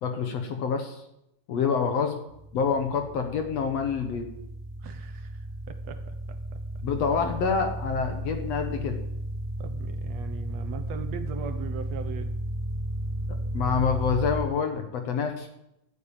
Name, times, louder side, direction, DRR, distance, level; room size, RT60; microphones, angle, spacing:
voice 1, 0.0-1.0 1.5-2.2 2.5-4.3 6.8-9.0 13.3-15.5, left 6 dB, 60° left, 5 dB, 1.9 m, -27 dB
voice 2, 1.5-1.9 4.8-6.4 9.6-12.3, right 8 dB, 65° right, 8 dB, 1.9 m, -40 dB
sound 1, 2.3-14.4, right 1 dB, 25° left, 1.3 m, -34 dB
12.5 x 9.2 x 8.7 m, 0.83 s
omnidirectional pair, 3.9 m